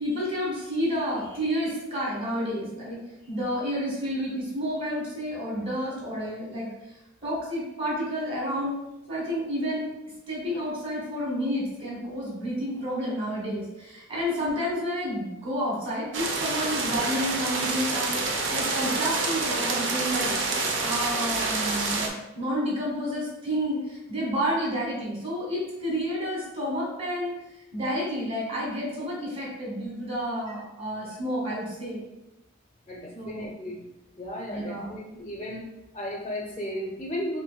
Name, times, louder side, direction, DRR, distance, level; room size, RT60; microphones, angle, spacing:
voice 1, 0.0-3.0 3.3-6.7 7.2-8.8 9.1-9.8 10.3-27.3 27.7-32.0 33.1-33.5 34.5-34.9, equal, 30° right, -5 dB, 1.4 m, -30 dB
sound 1, 16.1-22.1, right 3 dB, 75° right, 0.6 m, -27 dB
voice 2, 32.9-33.8 34.2-35.7 35.9-37.4, equal, 25° left, -2 dB, 0.5 m, -34 dB
5.7 x 2.6 x 2.2 m, 0.95 s
head